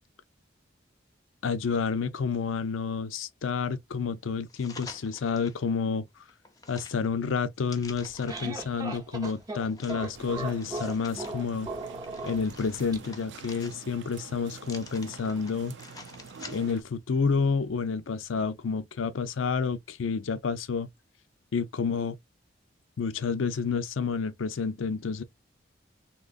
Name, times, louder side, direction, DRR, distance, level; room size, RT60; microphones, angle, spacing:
voice 1, 1.4-6.1 6.7-11.7 12.2-15.7 16.5-20.9 21.5-22.2 23.0-25.2, left 5 dB, 85° left, 0.5 m, -29 dB
sound 1, 4.5-5.6 6.1-8.6 9.2-11.3 11.8-14.1 14.6-16.9 17.3-17.4, left 3 dB, 20° left, 0.6 m, -48 dB
sound 2, 7.9-13.0, right 2 dB, 20° right, 0.7 m, -38 dB
sound 3, 10.1-16.8, right 5 dB, 65° right, 0.5 m, -47 dB
3.7 x 2.9 x 2.4 m
head